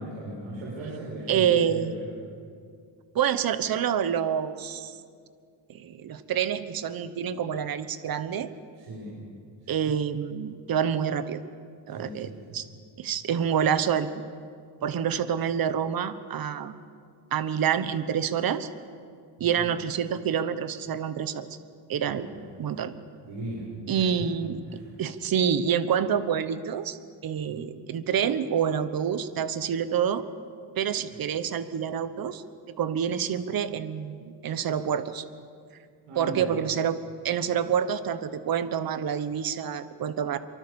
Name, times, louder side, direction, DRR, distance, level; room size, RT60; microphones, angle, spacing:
voice 1, 0.0-2.1 8.8-9.1 11.9-12.6 19.4-19.7 22.1-22.4 23.2-23.6 24.0-24.1 24.7-24.8 27.5-27.7 36.1-36.6, right 1 dB, 85° right, -5 dB, 6.7 m, -38 dB
voice 2, 1.3-2.0 3.1-5.0 5.7-8.5 9.7-11.4 11.9-12.6 13.0-14.1 14.8-16.7 17.3-18.7 19.4-21.5 21.9-22.3 22.6-22.9 23.9-24.6 25.0-27.0 27.2-30.3 30.8-32.4 32.8-35.2 36.1-37.0 37.2-40.4, right 8 dB, 45° right, 12 dB, 1.2 m, -27 dB
24.0 x 24.0 x 7.1 m, 2.2 s
cardioid pair, 155°, 47 cm